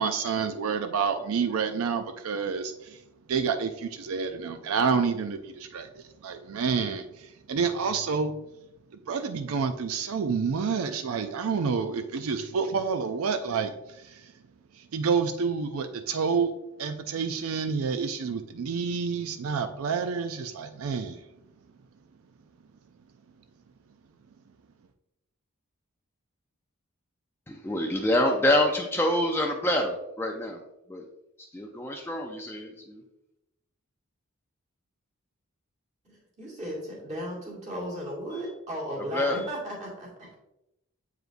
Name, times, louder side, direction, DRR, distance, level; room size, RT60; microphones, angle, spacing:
voice 1, 0.0-3.0 3.3-8.3 9.1-14.2 14.8-16.5 16.8-21.2, right 5 dB, 80° right, 8 dB, 0.4 m, -29 dB
voice 2, 27.5-30.6 30.9-31.0 31.5-33.0 38.3-38.4 39.0-39.5, left 1 dB, 10° left, 2 dB, 0.4 m, -27 dB
voice 3, 36.0-40.3, equal, 35° right, -5 dB, 2.0 m, -36 dB
7.7 x 4.9 x 2.6 m, 0.89 s
head